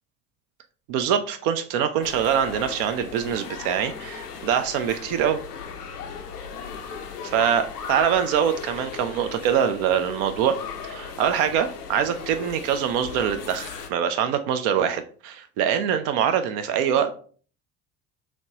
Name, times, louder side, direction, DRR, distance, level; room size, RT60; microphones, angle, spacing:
voice 1, 0.9-5.4 7.2-10.6 10.8-17.2, right 8 dB, 50° right, 9 dB, 0.5 m, -24 dB
sound 1, 2.0-13.9, left 6 dB, 85° left, 0.5 m, -37 dB
3.2 x 3.0 x 2.7 m, 0.43 s
figure-of-eight pair, 60°, 45 cm